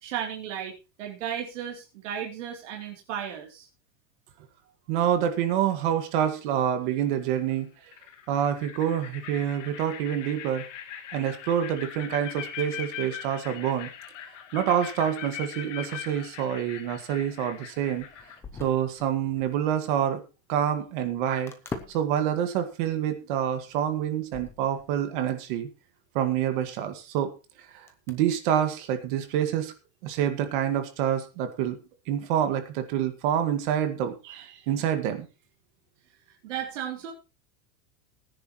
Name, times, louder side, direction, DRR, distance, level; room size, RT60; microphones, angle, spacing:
voice 1, 0.0-3.7 36.4-37.1, right 9 dB, 65° right, 0 dB, 3.3 m, -34 dB
voice 2, 4.9-7.7 8.3-10.6 11.1-13.9 14.5-18.0 18.6-20.2 20.5-21.5 21.9-25.7 26.2-27.3 27.7-29.7 30.0-31.8 32.1-35.3, right 9 dB, 40° right, 8 dB, 1.8 m, -27 dB
sound 1, 5.5-5.9 7.4-7.5 7.9-18.4, left 10 dB, 65° left, 2.1 m, -41 dB
sound 2, 17.9-19.7 20.0-20.1 21.5-22.2 22.7-22.8 23.1-25.2 26.1-26.2 27.9-28.2, left 4 dB, 5° left, 0.6 m, -42 dB
19.0 x 10.0 x 3.1 m, 0.31 s
supercardioid pair, 180°, 40 cm